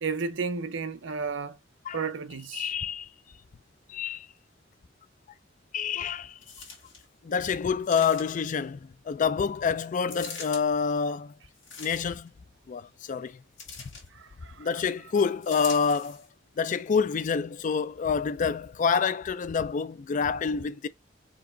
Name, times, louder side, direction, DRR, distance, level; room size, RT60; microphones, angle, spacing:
voice 1, 0.0-1.6 1.9-2.7 14.1-14.7, right 5 dB, 70° right, 0.6 m, -33 dB
voice 2, 2.5-3.1 3.9-4.3 5.7-6.4 7.2-8.8 9.1-11.3 11.8-12.3 12.7-13.4 14.6-16.2 16.6-20.9, left 6 dB, 40° left, 0.4 m, -27 dB
sound 1, 6.4-7.1 7.8-8.5 10.1-10.6 11.6-12.3 13.6-14.1 15.4-16.3 17.0-17.1, left 5 dB, 85° left, 2.0 m, -42 dB
4.6 x 2.8 x 3.8 m
head